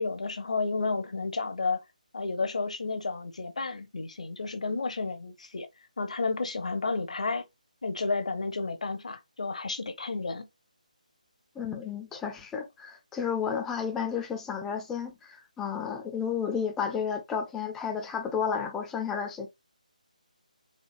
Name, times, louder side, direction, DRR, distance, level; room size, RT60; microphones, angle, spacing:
voice 1, 0.0-1.8 2.1-5.7 6.0-7.4 7.8-10.5, left 3 dB, 55° left, 0.9 m, -31 dB
voice 2, 11.5-19.5, left 7 dB, 5° left, 0.5 m, -32 dB
4.4 x 2.8 x 2.5 m
figure-of-eight pair, 150°, 4 cm